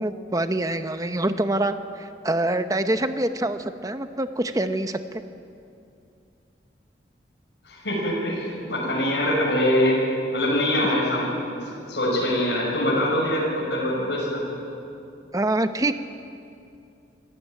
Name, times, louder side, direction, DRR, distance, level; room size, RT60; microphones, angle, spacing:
voice 1, 0.0-5.0 15.3-15.9, right 1 dB, 20° right, 9 dB, 0.9 m, -25 dB
voice 2, 7.6-10.0 10.3-11.5 11.9-14.4, left 1 dB, 80° left, -4 dB, 6.2 m, -23 dB
25.0 x 14.0 x 9.2 m, 2.6 s
head